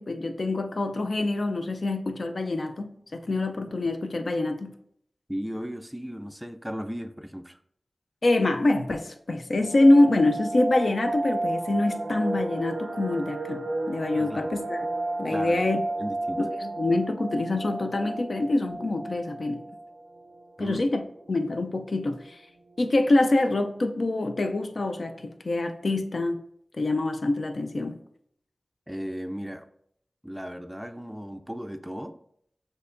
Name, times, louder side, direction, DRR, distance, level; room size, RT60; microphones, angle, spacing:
voice 1, 0.0-4.8 8.2-14.8 15.2-15.8 16.4-19.7 20.6-21.0 21.3-22.4 22.8-26.4 26.8-28.0, left 2 dB, 70° left, 0.4 m, -25 dB
voice 2, 5.3-7.6 14.2-14.5 15.3-15.6 16.0-16.4 20.6-20.8 28.9-29.7 30.2-32.1, equal, 10° right, 0.4 m, -35 dB
sound 1, 9.6-20.4 20.7-20.8 21.2-21.3 21.8-22.2 22.7-22.8 23.0-23.5 23.8-23.9, right 2 dB, 90° right, 0.4 m, -33 dB
6.3 x 2.8 x 2.6 m
cardioid pair, 45°, 0 cm